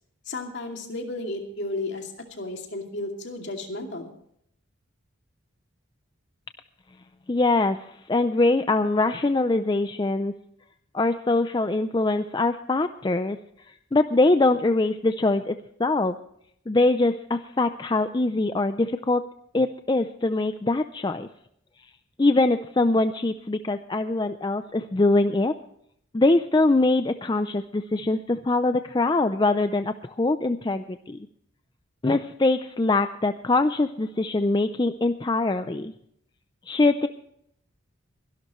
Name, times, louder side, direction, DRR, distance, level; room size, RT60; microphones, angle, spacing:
voice 1, 0.2-4.1, left 2 dB, 55° left, 3 dB, 2.5 m, -33 dB
voice 2, 7.3-10.3 10.9-13.4 13.9-16.2 16.7-19.2 19.5-21.3 22.2-25.5 26.1-31.2 32.0-35.9 36.7-37.1, left 2 dB, 20° left, 9 dB, 0.4 m, -23 dB
23.0 x 12.0 x 3.1 m, 0.70 s
head